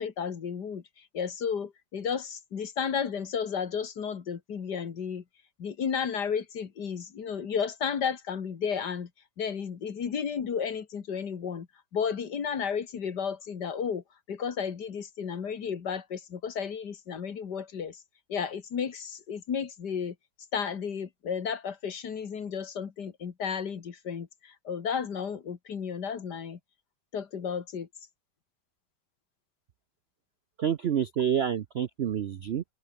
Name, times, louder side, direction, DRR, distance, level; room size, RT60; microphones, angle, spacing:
voice 1, 0.0-5.2 5.6-9.1 9.4-11.7 11.9-18.0 18.3-20.2 20.5-26.6 27.1-27.9, left 7 dB, 70° left, 2.3 m, -33 dB
voice 2, 30.6-32.6, right 9 dB, 65° right, 0.6 m, -28 dB
open air
omnidirectional pair, 1.9 m